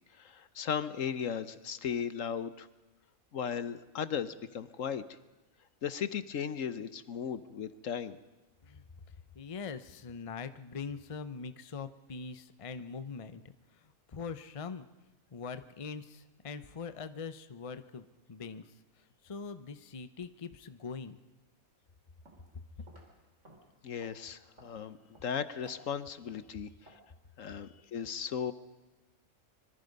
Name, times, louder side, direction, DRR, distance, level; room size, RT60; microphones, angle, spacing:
voice 1, 0.2-2.7 3.3-5.0 5.8-8.2 23.8-25.0 25.2-26.9 27.4-28.5, left 7 dB, 65° left, 13 dB, 1.2 m, -36 dB
voice 2, 9.3-14.9 15.3-18.6 19.0-21.2, left 5 dB, 30° left, 11 dB, 0.8 m, -42 dB
sound 1, 22.2-22.5 22.9-27.2, right 1 dB, 55° right, 4.1 m, -59 dB
25.0 x 23.5 x 5.4 m, 1.1 s
omnidirectional pair, 1.5 m